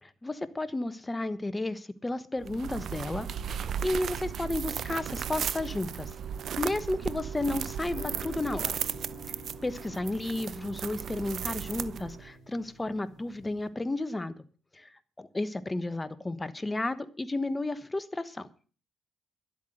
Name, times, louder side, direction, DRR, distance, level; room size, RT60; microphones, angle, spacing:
voice 1, 0.0-6.1 6.6-8.8 9.6-14.3 14.7-18.5, left 2 dB, 15° left, 14 dB, 1.2 m, -33 dB
sound 1, 2.4-12.3, right 8 dB, 65° right, 0.7 m, -36 dB
sound 2, 7.9-13.7, left 3 dB, 55° left, 3.5 m, -49 dB
11.5 x 8.4 x 7.8 m, 0.40 s
cardioid pair, 90°, 0 cm